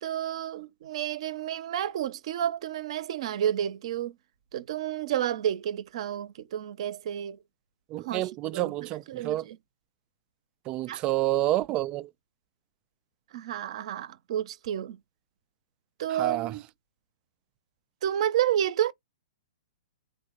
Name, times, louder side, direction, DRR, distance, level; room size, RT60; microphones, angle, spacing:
voice 1, 0.0-4.1 4.5-7.4 8.0-8.7 9.1-9.6 10.9-11.0 13.3-15.0 16.0-16.6 18.0-18.9, right 10 dB, 55° right, 0.7 m, -30 dB
voice 2, 7.9-9.5 10.7-12.1 16.1-16.5, right 15 dB, 30° right, 0.4 m, -29 dB
3.8 x 2.4 x 4.3 m
hypercardioid pair, 135°, 4 cm